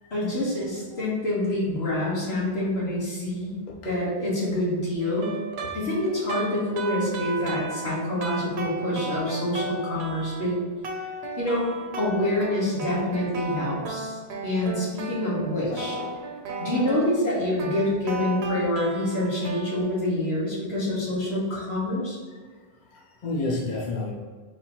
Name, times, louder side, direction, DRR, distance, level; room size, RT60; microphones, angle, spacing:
voice 1, 0.1-3.6 3.8-5.4 5.7-10.5 11.4-11.7 12.0-16.0 16.6-22.2, left 1 dB, 85° left, -6 dB, 1.7 m, -26 dB
sound 1, 5.0-10.5 10.8-19.8, right 2 dB, 85° right, 0.9 m, -35 dB
voice 2, 15.7-16.2 22.8-24.1, left 2 dB, 50° left, -3 dB, 0.8 m, -32 dB
4.1 x 2.8 x 4.4 m, 1.5 s
omnidirectional pair, 1.1 m